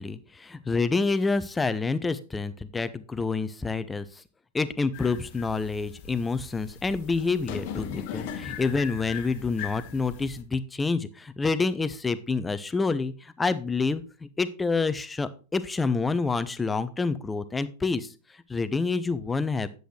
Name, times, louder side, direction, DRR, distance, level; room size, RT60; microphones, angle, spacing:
voice 1, 0.0-4.2 4.5-18.1 18.5-19.7, left 4 dB, 10° left, 14 dB, 0.7 m, -28 dB
sound 1, 4.9-10.4, left 8 dB, 45° left, 1.1 m, -39 dB
10.0 x 7.8 x 3.2 m, 0.35 s
figure-of-eight pair, 90°, 0 cm